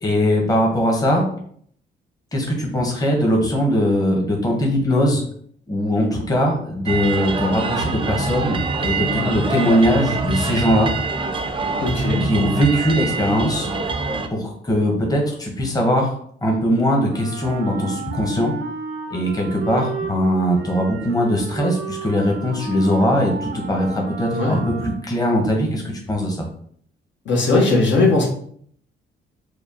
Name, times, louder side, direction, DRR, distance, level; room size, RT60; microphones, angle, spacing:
voice 1, 0.0-1.2 2.3-5.2 5.7-10.9 12.2-13.7 14.3-16.1 16.4-18.5 19.1-26.4, equal, 20° left, 0 dB, 0.9 m, -20 dB
sound 1, 6.9-14.3, right 3 dB, 25° right, 0.5 m, -25 dB
voice 2, 11.8-12.3 24.3-24.6 27.2-28.3, left 2 dB, 65° left, -1 dB, 1.1 m, -18 dB
Wind instrument woodwind instrument, 17.1-25.2, right 4 dB, 80° right, 0.6 m, -32 dB
4.7 x 2.3 x 2.8 m, 0.62 s
cardioid pair, 90°, 20 cm